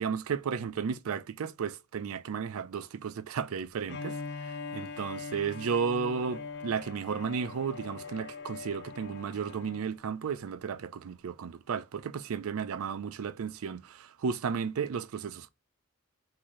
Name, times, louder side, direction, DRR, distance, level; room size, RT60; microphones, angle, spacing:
voice 1, 0.0-4.2 4.5-15.5, right 6 dB, 75° right, 0.4 m, -33 dB
Bowed string instrument, 3.9-9.9, left 4 dB, 50° left, 0.5 m, -42 dB
3.8 x 2.7 x 3.0 m
head